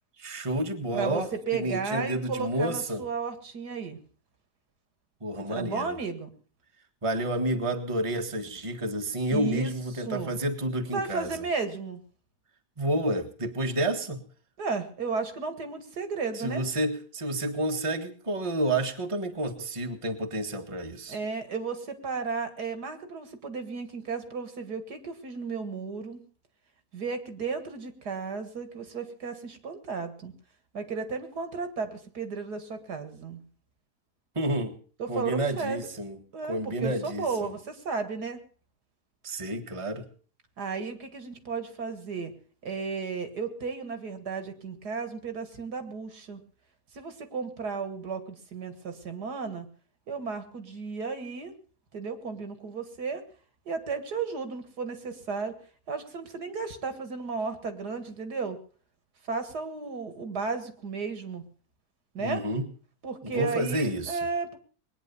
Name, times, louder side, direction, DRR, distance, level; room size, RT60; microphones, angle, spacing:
voice 1, 0.2-3.0 5.2-6.0 7.0-11.3 12.8-14.2 16.3-21.2 34.3-34.8 35.1-36.2 36.5-37.5 39.2-40.0 62.2-62.7 63.2-64.2, right 1 dB, 20° right, 5 dB, 1.7 m, -30 dB
voice 2, 0.9-4.0 5.5-6.3 9.3-10.4 10.9-12.0 14.6-16.6 21.1-26.2 26.9-30.3 30.7-33.4 35.0-35.9 36.3-38.4 40.6-42.3 42.6-46.4 46.9-49.7 50.1-51.5 51.9-53.2 53.7-55.5 55.9-58.6 59.3-61.4 62.1-62.4 63.0-64.6, right 5 dB, 70° right, 9 dB, 2.4 m, -34 dB
20.5 x 10.0 x 6.9 m, 0.43 s
omnidirectional pair, 1.8 m